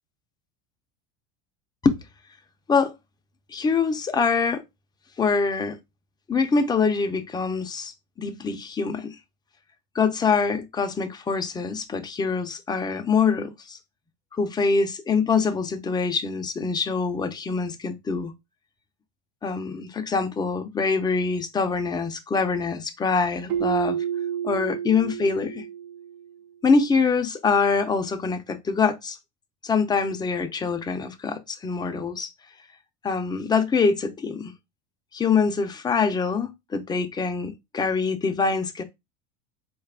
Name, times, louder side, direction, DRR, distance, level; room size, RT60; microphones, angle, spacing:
voice 1, 3.5-4.6 5.2-5.8 6.3-7.9 8.2-9.2 9.9-13.8 14.4-18.3 19.4-24.0 24.4-25.6 26.6-29.2 29.6-32.3 33.0-34.5 35.1-38.8, left 5 dB, 10° left, 0.4 m, -24 dB
Keyboard (musical), 23.5-26.3, right 9 dB, 65° right, 0.6 m, -30 dB
4.1 x 2.4 x 3.3 m
supercardioid pair, 120°, 36 cm